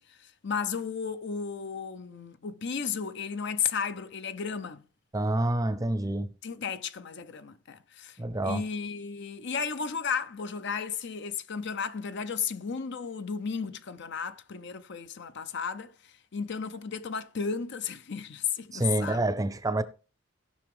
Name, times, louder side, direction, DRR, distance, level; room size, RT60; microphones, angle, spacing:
voice 1, 0.0-4.8 6.4-8.2 8.4-19.3, left 6 dB, 60° left, 0.6 m, -34 dB
voice 2, 5.1-6.3 8.2-8.6 18.7-19.8, right 1 dB, 15° right, 0.6 m, -27 dB
17.0 x 5.9 x 3.6 m
head